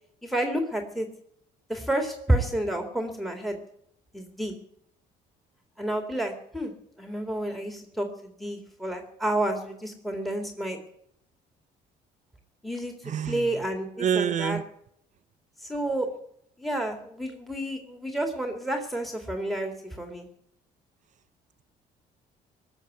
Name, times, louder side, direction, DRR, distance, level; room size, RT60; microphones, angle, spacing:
voice 1, 0.2-1.1 1.7-3.6 4.1-4.5 5.8-6.7 7.0-10.8 12.6-14.6 15.6-16.1 16.6-20.3, right 1 dB, ahead, 5 dB, 2.2 m, -30 dB
voice 2, 13.1-13.4 14.0-14.6, right 8 dB, 45° right, 12 dB, 0.7 m, -26 dB
19.0 x 7.1 x 9.3 m, 0.72 s
cardioid pair, 110°, 17 cm